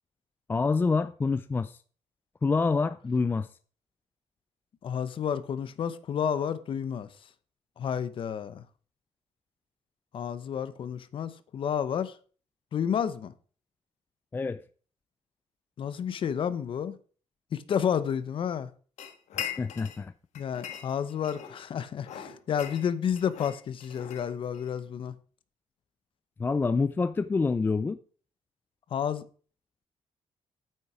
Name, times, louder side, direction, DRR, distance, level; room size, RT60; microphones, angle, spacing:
voice 1, 0.5-1.8 2.4-3.5 14.3-14.6 19.4-20.1 26.4-28.0, left 4 dB, 15° left, 0.4 m, -27 dB
voice 2, 4.8-7.1 7.8-8.6 10.1-12.2 12.7-13.3 15.8-17.0 17.5-18.7 20.3-25.1 28.9-29.2, left 8 dB, 50° left, 0.8 m, -30 dB
sound 1, 19.0-20.0 20.3-21.6 22.0-24.7, left 9 dB, 75° left, 1.5 m, -40 dB
9.2 x 8.7 x 4.9 m
cardioid pair, 150°, 12 cm